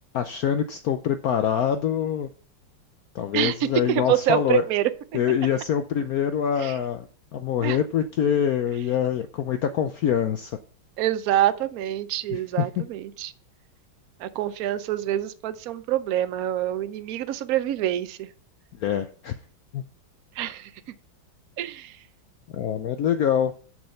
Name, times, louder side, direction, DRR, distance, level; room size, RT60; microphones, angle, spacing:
voice 1, 0.1-2.3 3.1-4.6 5.1-7.0 7.3-10.5 12.3-12.7 18.8-19.4 19.7-19.8 22.5-23.5, left 9 dB, 90° left, 8 dB, 0.8 m, -25 dB
voice 2, 3.9-4.9 6.6-6.8 7.6-7.8 11.0-13.3 14.2-18.3 20.4-20.7 21.6-22.0, right 13 dB, 70° right, 12 dB, 0.8 m, -26 dB
7.0 x 6.3 x 5.6 m, 0.41 s
omnidirectional pair, 2.3 m